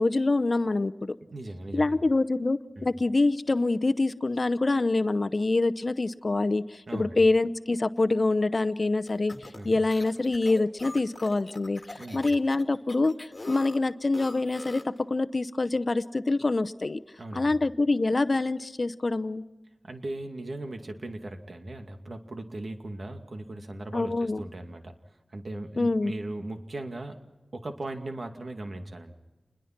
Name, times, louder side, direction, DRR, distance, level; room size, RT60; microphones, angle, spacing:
voice 1, 0.0-1.2 1.7-13.2 13.4-17.0 17.3-19.4 23.9-24.4 25.8-26.1, left 2 dB, 55° left, 12 dB, 0.7 m, -25 dB
voice 2, 1.3-2.0 2.8-2.9 6.9-7.2 9.5-9.8 12.0-12.2 17.2-17.6 19.8-24.9 25.3-27.2 27.5-29.1, right 2 dB, 65° right, 5 dB, 2.3 m, -38 dB
sound 1, 9.1-15.0, left 2 dB, 40° left, 2.1 m, -43 dB
28.5 x 21.5 x 6.0 m, 1.1 s
wide cardioid pair, 55°, 0 cm